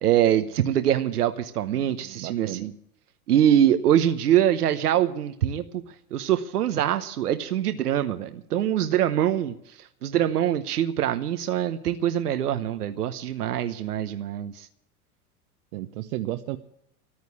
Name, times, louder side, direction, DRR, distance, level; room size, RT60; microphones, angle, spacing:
voice 1, 0.0-2.7 3.3-5.6 6.1-9.5 10.0-14.7, right 10 dB, 90° right, 9 dB, 1.0 m, -23 dB
voice 2, 1.7-2.7 15.7-16.6, right 15 dB, 70° right, 6 dB, 1.0 m, -34 dB
14.5 x 9.6 x 8.5 m, 0.75 s
hypercardioid pair, 100°, 45 cm